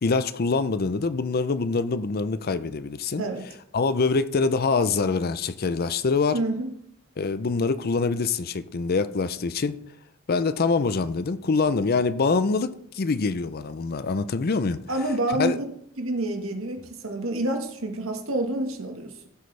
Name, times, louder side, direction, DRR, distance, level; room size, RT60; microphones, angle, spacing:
voice 1, 0.0-3.2 3.7-6.4 7.2-9.8 10.3-14.8 15.4-15.6, left 4 dB, 50° left, 0.5 m, -25 dB
voice 2, 6.3-6.7 14.9-15.7 16.0-19.3, right 1 dB, 90° right, 1.5 m, -28 dB
15.5 x 7.9 x 3.3 m
head